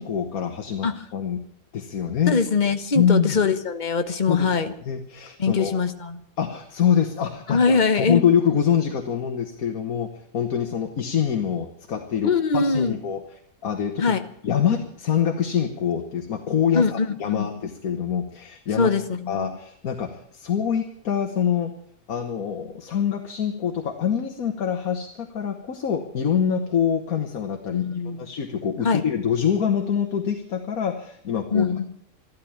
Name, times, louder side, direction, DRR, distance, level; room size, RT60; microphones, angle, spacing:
voice 1, 0.0-1.4 1.7-2.4 3.0-3.4 4.3-4.6 4.9-5.8 6.4-13.2 13.6-14.0 14.4-18.9 19.3-21.7 22.1-27.9 28.2-31.7, left 8 dB, 75° left, 5 dB, 1.7 m, -25 dB
voice 2, 2.3-4.7 5.4-6.2 7.5-8.2 12.2-13.0 14.0-14.2 16.7-17.6 18.8-19.6 27.7-28.2 28.8-29.0 31.5-31.9, left 4 dB, 35° left, 9 dB, 1.2 m, -22 dB
13.5 x 12.5 x 8.7 m, 0.68 s
omnidirectional pair, 1.5 m